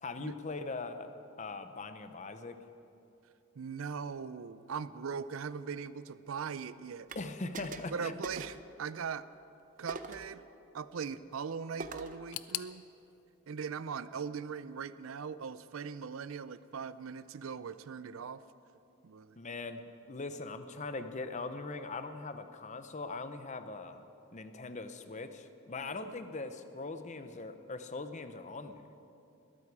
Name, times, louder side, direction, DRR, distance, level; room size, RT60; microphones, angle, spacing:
voice 1, 0.0-1.1 1.4-2.6 7.1-8.1 19.4-19.8 20.1-24.0 24.3-28.8, left 3 dB, 35° left, 9 dB, 0.8 m, -41 dB
voice 2, 3.6-7.1 7.9-9.3 9.8-10.4 10.7-12.8 13.5-18.4 19.0-19.4 25.8-26.1, right 6 dB, 70° right, 15 dB, 0.5 m, -40 dB
sound 1, 7.1-7.2 7.5-8.0 8.2-8.7 9.9-10.3 11.8-12.2, right 3 dB, 40° right, 0.7 m, -43 dB
sound 2, 12.3-15.2 15.4-16.3 16.6-16.7 17.5-17.6, left 15 dB, 85° left, 0.5 m, -46 dB
21.0 x 13.0 x 4.8 m, 2.7 s
head